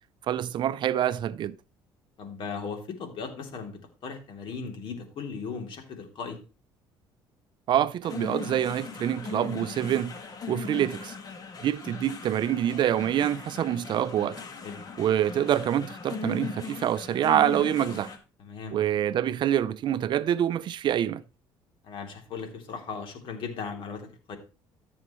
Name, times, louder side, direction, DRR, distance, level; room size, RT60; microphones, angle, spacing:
voice 1, 0.3-1.6 7.7-10.1 10.5-11.1 11.6-14.4 15.0-18.1 18.7-21.2, right 11 dB, 50° right, 0.5 m, -26 dB
voice 2, 2.2-6.4 14.6-14.8 18.4-18.8 21.8-24.4, left 5 dB, 60° left, 3.1 m, -37 dB
sound 1, 8.0-18.2, left 5 dB, 40° left, 1.9 m, -39 dB
14.0 x 7.2 x 3.1 m
supercardioid pair, 95°, 10 cm